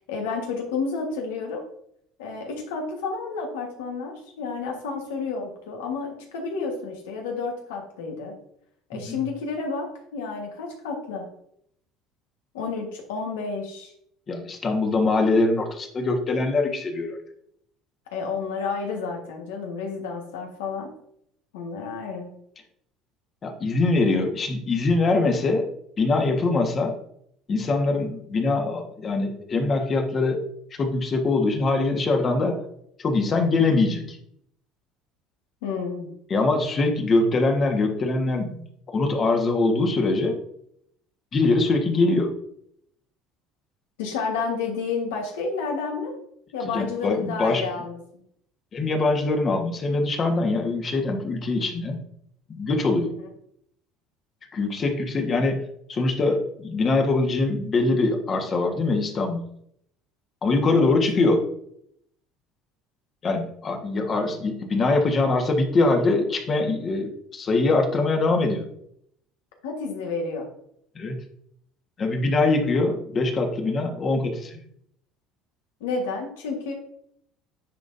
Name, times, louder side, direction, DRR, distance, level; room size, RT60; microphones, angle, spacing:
voice 1, 0.1-1.6 2.2-8.4 8.9-11.3 12.5-13.9 18.1-20.9 21.5-22.3 35.6-36.1 44.0-46.2 46.5-48.2 53.0-53.3 60.7-60.9 69.6-70.5 75.8-76.7, left 4 dB, 85° left, 2 dB, 1.5 m, -30 dB
voice 2, 14.3-17.2 23.4-25.7 26.0-27.0 27.5-30.4 30.7-32.6 33.0-34.2 36.3-38.6 38.9-40.4 41.3-42.3 46.7-47.6 48.7-52.0 52.5-53.1 54.5-55.6 55.9-59.4 60.4-61.5 63.2-68.7 70.9-71.2 72.0-74.6, left 3 dB, 40° left, 4 dB, 1.4 m, -23 dB
10.0 x 3.9 x 2.7 m, 0.70 s
supercardioid pair, 85°, 0 cm